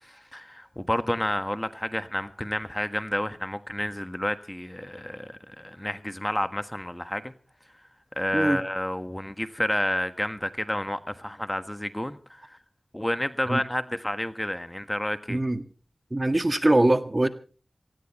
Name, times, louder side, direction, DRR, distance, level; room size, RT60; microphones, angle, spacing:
voice 1, 0.0-7.3 8.2-12.6 12.9-15.4, left 1 dB, 15° left, 1.4 m, -30 dB
voice 2, 15.3-15.6 16.1-17.3, right 1 dB, 35° right, 1.7 m, -22 dB
18.5 x 16.0 x 4.3 m
wide cardioid pair, 45°, 0 cm